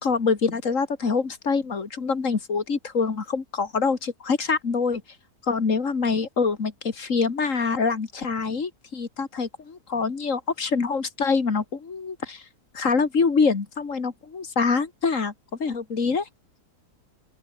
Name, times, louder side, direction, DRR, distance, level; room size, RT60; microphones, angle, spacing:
voice 1, 0.0-5.0 5.4-12.4 12.7-15.3 15.6-16.3, left 4 dB, 55° left, 2.5 m, -25 dB
open air
omnidirectional pair, 1.7 m